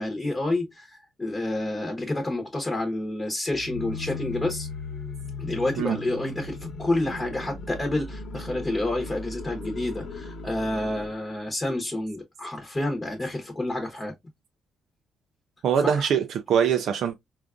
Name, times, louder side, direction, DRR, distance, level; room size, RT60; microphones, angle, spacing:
voice 1, 0.0-4.7 5.4-14.1 15.8-16.1, left 1 dB, 20° left, 0.9 m, -29 dB
sound 1, 3.5-11.2, left 3 dB, 65° left, 0.9 m, -37 dB
voice 2, 15.6-17.2, right 8 dB, 70° right, 0.4 m, -23 dB
3.7 x 2.4 x 2.3 m
cardioid pair, 90°, 0 cm